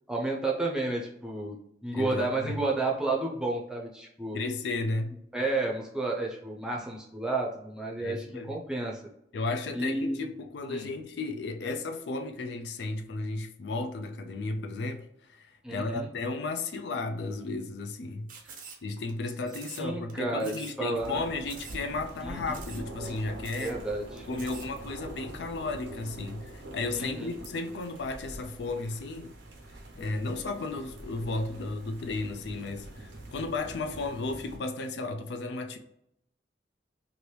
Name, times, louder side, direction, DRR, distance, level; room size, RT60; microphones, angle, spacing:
voice 1, 0.1-1.6 1.8-4.4 5.3-9.0 9.7-10.3 10.7-10.9 15.6-16.1 18.4-18.5 19.8-21.2 22.2-22.6 23.6-24.3 26.9-27.3, right 2 dB, 5° right, 0.6 m, -31 dB
voice 2, 1.9-2.5 4.3-5.1 8.0-8.6 9.3-18.3 18.8-23.8 24.3-29.4 30.0-35.8, left 3 dB, 70° left, 0.4 m, -34 dB
sound 1, 18.3-19.1 19.5-20.1 20.4-20.8 21.0-21.1 21.5-21.8 22.1-22.2 22.5-22.9 23.2-23.3 23.4-23.8 24.2-24.7, right 5 dB, 45° right, 0.5 m, -46 dB
sound 2, 20.9-34.6, right 1 dB, 85° right, 0.8 m, -44 dB
3.0 x 2.6 x 3.2 m
head